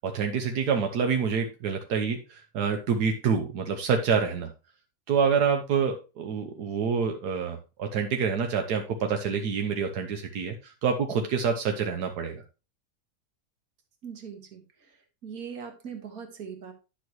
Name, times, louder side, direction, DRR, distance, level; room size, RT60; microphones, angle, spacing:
voice 1, 0.0-4.5 5.1-12.4, right 6 dB, 85° right, 4 dB, 1.5 m, -27 dB
voice 2, 14.0-14.9 15.2-16.7, right 7 dB, 65° right, 5 dB, 2.1 m, -40 dB
10.5 x 6.3 x 3.1 m, 0.30 s
omnidirectional pair, 1.7 m